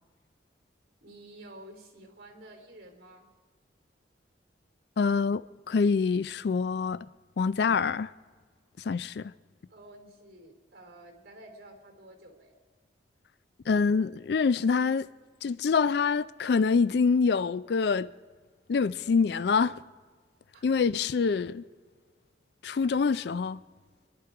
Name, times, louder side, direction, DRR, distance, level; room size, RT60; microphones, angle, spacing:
voice 1, 1.0-3.3 9.7-12.6 20.5-20.7, right 1 dB, 55° right, 3.2 m, -50 dB
voice 2, 5.0-7.1 7.4-8.1 8.9-9.3 13.7-15.1 15.4-18.1 18.7-19.8 20.6-21.6 22.6-23.6, left 5 dB, 60° left, 0.4 m, -25 dB
25.5 x 11.5 x 4.8 m
head